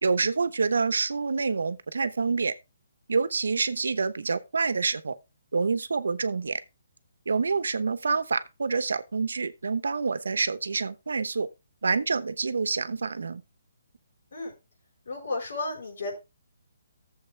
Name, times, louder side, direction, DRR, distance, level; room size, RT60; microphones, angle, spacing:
voice 1, 0.0-2.5 3.1-5.2 5.5-6.6 7.3-11.5 11.8-13.4, right 4 dB, 85° right, 1.0 m, -27 dB
voice 2, 15.1-16.1, left 2 dB, 65° left, 4.8 m, -33 dB
13.0 x 7.5 x 3.4 m
hypercardioid pair, 165°, 0 cm